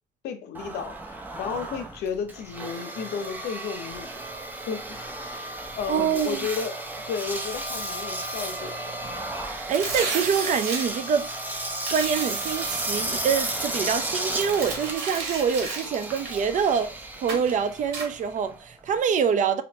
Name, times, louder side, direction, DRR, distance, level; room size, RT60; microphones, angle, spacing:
voice 1, 0.2-4.2 4.7-6.8 7.1-9.0, left 6 dB, 75° left, 0.8 m, -33 dB
Engine, 0.5-19.0, right 1 dB, 10° right, 0.7 m, -34 dB
voice 2, 5.9-6.5 9.4-11.3 11.9-19.6, right 7 dB, 50° right, 0.6 m, -25 dB
sound 1, 9.6-10.9 11.8-13.0 14.2-16.9 17.3-17.5 17.9-18.1, right 4 dB, 80° right, 1.7 m, -33 dB
3.1 x 2.7 x 4.2 m
cardioid pair, 110°, 17 cm